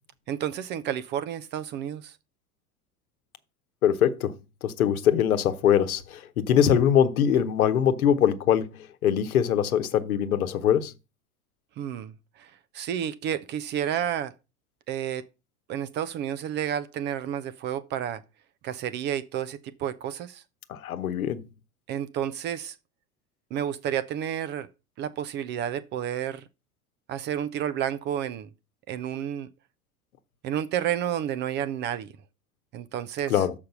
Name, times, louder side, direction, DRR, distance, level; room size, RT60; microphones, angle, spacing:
voice 1, 0.3-2.2 11.8-14.3 14.9-15.2 15.7-18.2 18.6-20.4 21.9-22.8 23.5-24.7 25.0-26.5 27.1-28.5 28.9-29.5 30.4-32.1 32.7-33.5, right 10 dB, 25° right, 0.4 m, -31 dB
voice 2, 3.8-4.3 4.6-10.9 20.7-21.4 33.3-33.5, left 9 dB, 70° left, 1.0 m, -23 dB
6.7 x 5.1 x 6.6 m
figure-of-eight pair, 80°, 44 cm